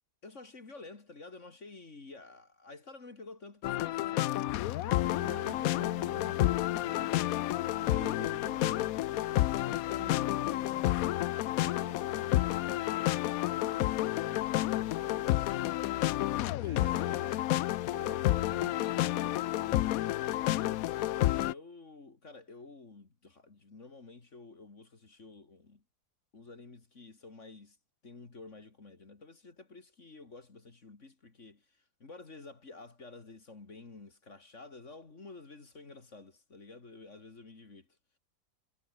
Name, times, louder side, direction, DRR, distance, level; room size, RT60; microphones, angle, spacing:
voice 1, 0.2-4.6 16.6-17.3 21.4-25.8 26.3-27.8 28.0-37.9, left 3 dB, 45° left, 2.9 m, -51 dB
sound 1, 3.6-21.5, left 15 dB, 70° left, 0.9 m, -30 dB
voice 2, 4.8-7.2 7.8-16.1 16.6-19.9, right 4 dB, 50° right, 2.7 m, -51 dB
omnidirectional pair, 1.7 m